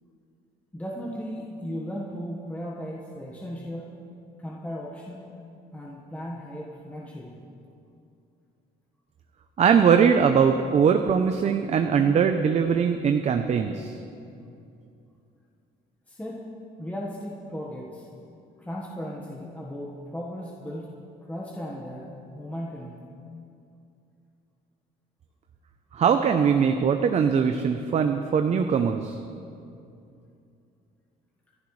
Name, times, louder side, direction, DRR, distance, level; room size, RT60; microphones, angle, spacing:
voice 1, 0.7-4.0 4.4-5.4 5.7-7.4 16.1-16.5 16.8-18.1 18.6-20.9 21.2-23.0, equal, 10° left, -3 dB, 1.4 m, -36 dB
voice 2, 9.6-14.0 25.9-29.2, right 6 dB, 40° right, 6 dB, 0.7 m, -21 dB
27.0 x 11.0 x 3.3 m, 2.6 s
cardioid pair, 110°, 17 cm